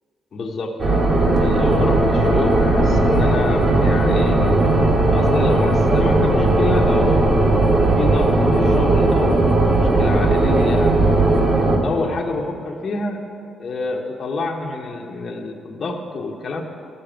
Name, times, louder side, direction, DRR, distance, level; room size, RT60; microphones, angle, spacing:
voice 1, 0.3-0.8 1.4-4.4 5.1-7.6 7.9-10.9 11.8-13.2 13.6-16.6, left 3 dB, 45° left, 0 dB, 1.1 m, -27 dB
sound 1, 0.8-11.8, right 2 dB, 35° right, 2.0 m, -17 dB
sound 2, 1.4-11.4, right 2 dB, 55° right, 1.2 m, -29 dB
12.5 x 6.8 x 8.9 m, 2.6 s
cardioid pair, 90°, 0 cm